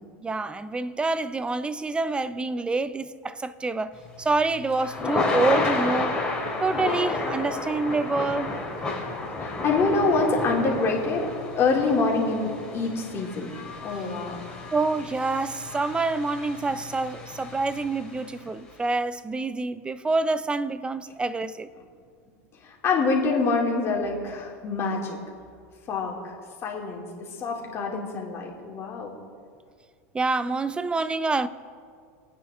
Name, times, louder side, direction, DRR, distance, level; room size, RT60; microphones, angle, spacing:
voice 1, 0.2-3.9 4.2-6.2 6.6-8.5 14.7-21.7 30.1-31.5, right 3 dB, 10° right, 0.5 m, -27 dB
Thunder / Rain, 4.0-18.3, left 3 dB, 10° left, 3.2 m, -31 dB
voice 2, 9.4-11.3 11.6-13.5 13.8-14.6 21.8-21.9 22.6-25.2 25.9-26.3 26.6-27.1 27.4-29.1, left 3 dB, 35° left, 3.3 m, -26 dB
25.0 x 9.5 x 3.8 m
supercardioid pair, 120°, 8 cm